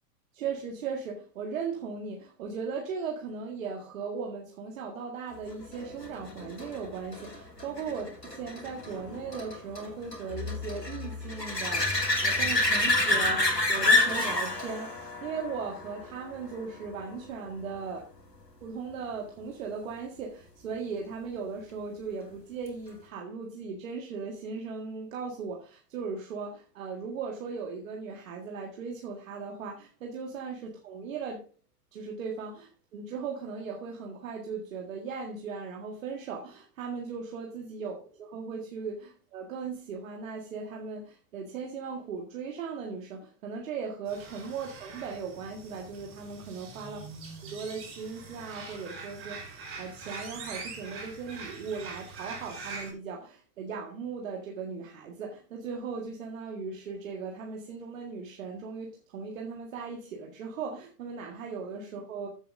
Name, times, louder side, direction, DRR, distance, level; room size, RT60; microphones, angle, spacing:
voice 1, 0.3-8.1 8.4-18.1 18.6-31.4 31.9-47.2 47.5-62.3, right 5 dB, 55° right, 1.9 m, -38 dB
sound 1, 5.7-17.0 22.7-22.8, left 2 dB, 90° left, 2.5 m, -29 dB
sound 2, 44.1-52.9, right 4 dB, 25° right, 4.8 m, -43 dB
14.5 x 7.5 x 2.6 m
figure-of-eight pair, 100°, 48 cm